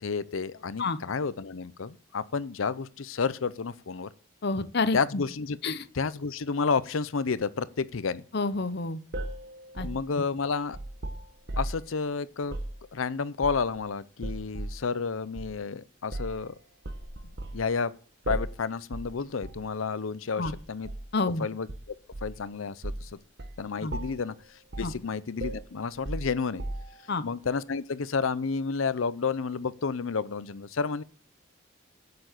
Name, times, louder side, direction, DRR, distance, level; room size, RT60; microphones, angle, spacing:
voice 1, 0.0-4.1 4.9-5.6 5.9-8.2 9.8-10.8 11.6-12.6 12.9-16.5 17.5-17.9 18.3-20.9 21.4-21.7 22.2-23.2 23.6-24.3 24.8-26.6 27.2-31.0, left 5 dB, 90° left, 0.6 m, -30 dB
voice 2, 4.4-5.2 5.6-5.8 8.3-9.0 9.7-9.9 10.2-10.3 20.4-20.5 21.1-21.5 23.8-23.9 24.8-24.9 27.1-27.2, left 3 dB, 55° left, 0.8 m, -29 dB
sound 1, 9.1-11.9 12.4-12.8 13.4-13.8 14.2-14.8 15.4-15.5 16.1-16.4 16.8-17.6 18.3-18.6 18.9-19.1 19.4-19.7 20.4-21.1 21.7-22.4 22.8-23.1 23.4-23.6 23.9-24.3 24.7-25.0 25.4-27.1, right 1 dB, 60° right, 1.2 m, -36 dB
8.3 x 6.9 x 8.0 m
head